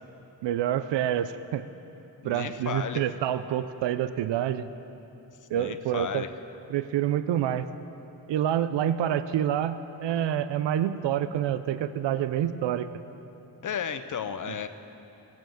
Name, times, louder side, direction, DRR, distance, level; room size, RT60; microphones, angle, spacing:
voice 1, 0.4-1.7 2.2-4.7 5.5-6.2 6.7-7.7 8.3-12.9, right 10 dB, 75° right, 12 dB, 0.6 m, -27 dB
voice 2, 2.2-3.0 5.5-6.3 13.6-14.7, left 7 dB, 45° left, 10 dB, 0.7 m, -33 dB
16.5 x 7.4 x 7.7 m, 2.9 s
cardioid pair, 100°, 43 cm